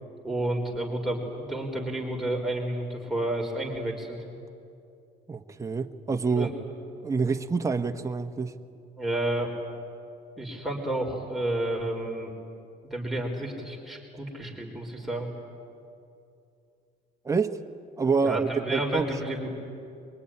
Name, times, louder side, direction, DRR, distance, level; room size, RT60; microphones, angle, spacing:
voice 1, 0.2-4.2 6.4-6.5 9.0-9.5 10.4-12.3 12.9-15.3 18.2-19.6, right 1 dB, ahead, 1 dB, 4.3 m, -30 dB
voice 2, 5.3-6.5 7.0-8.6 17.2-17.6 18.0-19.1, right 4 dB, 20° right, 5 dB, 1.2 m, -27 dB
23.0 x 22.5 x 9.9 m, 2.5 s
cardioid pair, 110°, 17 cm